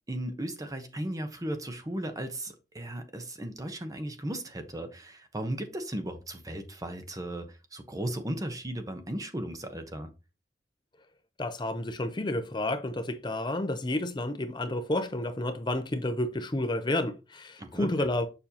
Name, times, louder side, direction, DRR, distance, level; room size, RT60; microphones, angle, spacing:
voice 1, 0.1-10.1 17.6-18.1, right 1 dB, 20° right, 0.9 m, -36 dB
voice 2, 11.4-18.3, left 1 dB, 25° left, 0.6 m, -30 dB
6.8 x 5.4 x 2.8 m
head